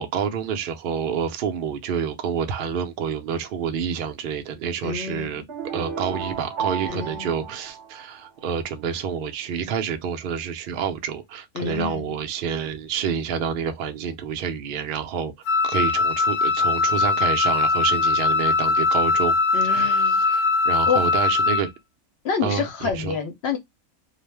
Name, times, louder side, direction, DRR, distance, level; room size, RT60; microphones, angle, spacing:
voice 1, 0.0-5.4 5.7-15.3 15.6-19.4 19.6-21.7 22.4-23.1, right 7 dB, 80° right, 0.5 m, -28 dB
voice 2, 4.8-5.4 6.9-7.3 11.5-12.2 19.5-20.2 20.9-21.3 22.2-23.6, left 6 dB, 65° left, 0.7 m, -28 dB
sound 1, 5.5-8.5, right 6 dB, 55° right, 0.8 m, -33 dB
Wind instrument woodwind instrument, 15.5-21.7, left 4 dB, 90° left, 1.0 m, -21 dB
2.4 x 2.0 x 3.2 m
omnidirectional pair, 1.5 m